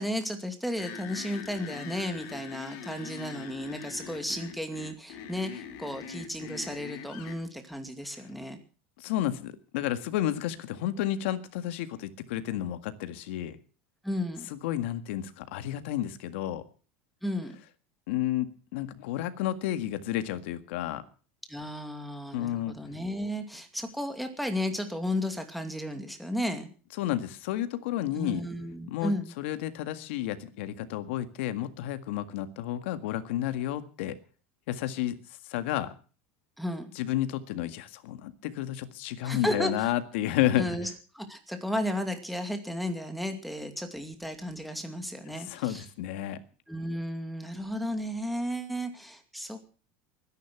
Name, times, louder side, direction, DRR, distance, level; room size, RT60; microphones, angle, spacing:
voice 1, 0.0-8.6 14.0-14.5 17.2-17.5 21.5-26.7 28.1-29.3 36.6-36.9 39.2-39.9 40.6-45.8 46.7-49.6, equal, ahead, 6 dB, 2.4 m, -34 dB
sound 1, 0.8-7.4, left 7 dB, 60° left, 3.2 m, -43 dB
voice 2, 9.0-13.6 14.5-16.6 18.1-21.0 22.3-22.7 27.0-28.5 28.9-34.1 34.7-35.2 35.5-35.9 36.9-40.7 45.3-46.4, left 13 dB, 75° left, 10 dB, 1.8 m, -31 dB
22.5 x 10.5 x 6.1 m, 0.38 s
supercardioid pair, 150°, 6 cm